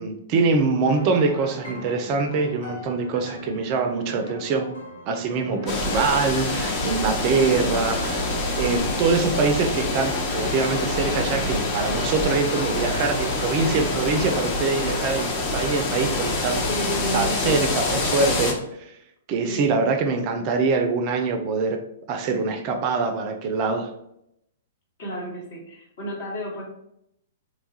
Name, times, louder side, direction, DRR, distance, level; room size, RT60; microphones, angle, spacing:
voice 1, 0.0-4.7 5.1-16.7 17.1-19.0 19.3-23.9, right 4 dB, 40° right, 5 dB, 0.3 m, -24 dB
sound 1, 0.8-14.9, equal, 75° left, 0.8 m, -38 dB
sound 2, 5.7-18.5, left 2 dB, 35° left, 0.6 m, -26 dB
voice 2, 7.5-7.8 16.4-17.6 19.4-19.7 25.0-26.7, equal, 55° left, -3 dB, 1.1 m, -32 dB
2.9 x 2.3 x 2.6 m, 0.78 s
figure-of-eight pair, 110°, 0 cm